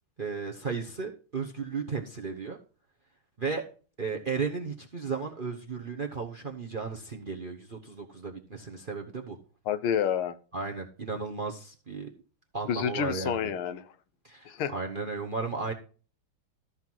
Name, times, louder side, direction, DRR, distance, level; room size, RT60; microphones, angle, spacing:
voice 1, 0.2-2.6 3.4-3.6 4.0-9.4 10.5-12.1 12.5-13.5 14.2-15.7, right 4 dB, 35° right, 0.8 m, -34 dB
voice 2, 9.7-10.4 12.7-13.9 14.5-14.7, left 8 dB, 85° left, 1.7 m, -29 dB
13.5 x 5.7 x 4.6 m
omnidirectional pair, 2.3 m